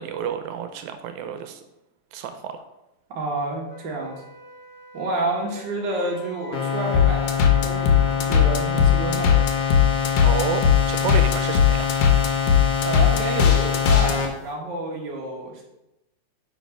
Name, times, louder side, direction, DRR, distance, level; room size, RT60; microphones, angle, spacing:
voice 1, 0.0-1.6 2.1-2.6 10.2-11.9, right 8 dB, 85° right, 8 dB, 1.9 m, -30 dB
voice 2, 3.1-4.2 4.9-7.3 7.6-9.3 12.8-15.6, right 2 dB, 50° right, -2 dB, 1.6 m, -29 dB
Wind instrument woodwind instrument, 3.7-10.0, left 1 dB, 15° right, 0.4 m, -46 dB
sound 1, 6.5-14.3, left 6 dB, 60° left, 0.9 m, -25 dB
sound 2, 6.9-14.1, left 8 dB, 80° left, 2.1 m, -18 dB
5.2 x 4.6 x 5.2 m, 0.91 s
omnidirectional pair, 3.3 m